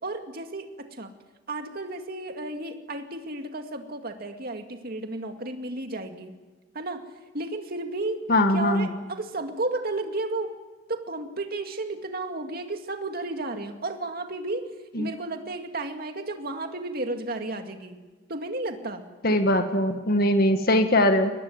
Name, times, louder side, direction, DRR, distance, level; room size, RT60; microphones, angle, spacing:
voice 1, 0.0-1.1 1.5-6.4 6.7-7.1 7.3-10.6 10.9-18.0 18.3-19.0, right 2 dB, 50° right, 5 dB, 2.2 m, -33 dB
voice 2, 8.3-8.9 14.9-15.1 19.2-21.3, left 1 dB, 50° left, 6 dB, 1.8 m, -21 dB
22.5 x 19.5 x 9.5 m, 1.2 s
head